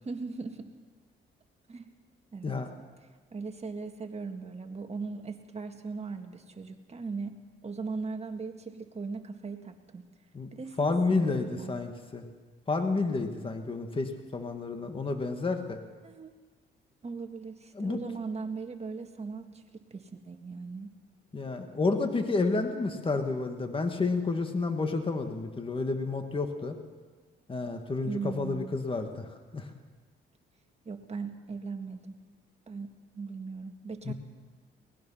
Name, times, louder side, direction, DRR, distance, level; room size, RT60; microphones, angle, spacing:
voice 1, 0.1-0.7 1.7-1.9 2.3-2.6 3.3-7.3 7.6-10.0 10.5-11.7 16.0-16.3 17.0-20.9 28.1-28.8 30.9-32.1 32.7-34.1, right 4 dB, 30° right, 5 dB, 1.8 m, -39 dB
voice 2, 10.8-12.2 12.7-15.8 17.7-18.0 21.3-26.8 27.5-29.7 34.1-34.2, left 3 dB, 25° left, 5 dB, 2.1 m, -30 dB
22.5 x 19.5 x 5.9 m, 1.4 s
cardioid pair, 90°, 20 cm